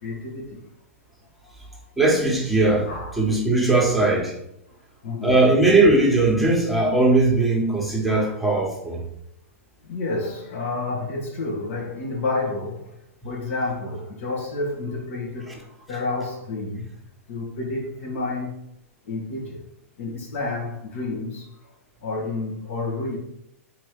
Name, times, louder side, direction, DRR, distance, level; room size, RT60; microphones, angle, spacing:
voice 1, 0.0-0.6 2.9-3.2 5.0-5.5 8.1-8.4 9.8-12.9 13.2-16.9 17.3-18.6 19.0-19.6 20.0-21.5 22.0-23.2, left 3 dB, 65° left, 1.8 m, -30 dB
voice 2, 2.0-2.9 3.2-4.3 5.2-9.0, right 2 dB, ahead, 1.4 m, -19 dB
4.4 x 4.1 x 5.2 m
hypercardioid pair, 110°, 8 cm